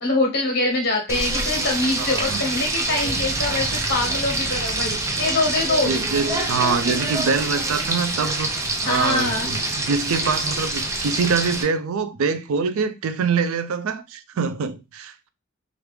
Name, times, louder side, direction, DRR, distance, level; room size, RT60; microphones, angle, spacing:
voice 1, 0.0-5.9 8.8-9.5, left 2 dB, 50° left, 1.3 m, -24 dB
Frying (food), 1.1-11.6, right 2 dB, 15° right, 0.3 m, -26 dB
voice 2, 2.0-2.4 5.8-8.5 8.8-15.3, right 5 dB, 80° right, 0.4 m, -24 dB
sound 1, 2.9-11.3, right 1 dB, ahead, 0.7 m, -40 dB
3.2 x 2.4 x 3.1 m
head